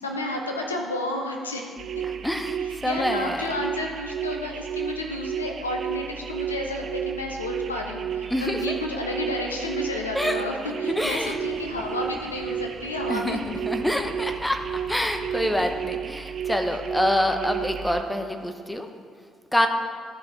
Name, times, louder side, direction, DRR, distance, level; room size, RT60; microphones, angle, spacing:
voice 1, 0.0-2.0 2.6-13.4, left 1 dB, 90° left, 1 dB, 0.7 m, -31 dB
sound 1, 1.8-18.0, right 9 dB, 50° right, 0.4 m, -33 dB
voice 2, 2.2-3.5 8.3-8.8 10.1-10.4 10.9-11.7 13.1-18.9 19.5-19.7, equal, 5° left, 6 dB, 0.9 m, -26 dB
sound 2, 10.9-15.9, left 1 dB, 35° left, 1.0 m, -48 dB
13.0 x 5.3 x 3.4 m, 2.2 s
figure-of-eight pair, 45°, 0 cm